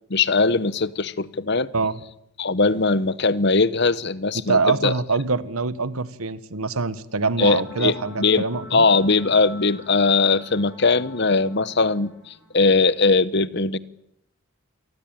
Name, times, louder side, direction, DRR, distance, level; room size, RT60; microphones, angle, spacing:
voice 1, 0.1-1.7 2.4-4.9 7.4-13.8, left 4 dB, 50° left, 1.0 m, -20 dB
voice 2, 4.5-8.9, right 4 dB, 90° right, 1.5 m, -24 dB
sound 1, 7.4-12.8, left 2 dB, 5° right, 7.9 m, -45 dB
27.5 x 19.5 x 9.1 m
head